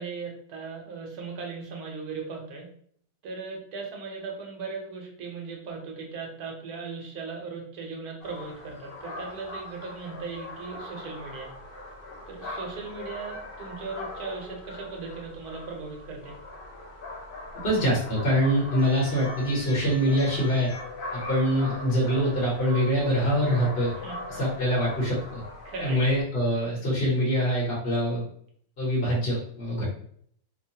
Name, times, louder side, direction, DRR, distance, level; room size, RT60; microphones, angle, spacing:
voice 1, 0.0-2.7 3.2-11.5 12.3-16.4 24.0-24.2 25.6-26.2, right 4 dB, 75° right, 1 dB, 1.3 m, -38 dB
sound 1, 8.2-26.2, left 1 dB, 65° left, 0.5 m, -41 dB
voice 2, 17.6-20.7 21.1-23.9 24.4-25.4 25.8-28.2 28.8-29.8, equal, 45° left, -5 dB, 1.1 m, -24 dB
sound 2, 18.8-24.8, left 3 dB, 80° left, 1.1 m, -44 dB
2.9 x 2.1 x 2.7 m, 0.62 s
omnidirectional pair, 1.7 m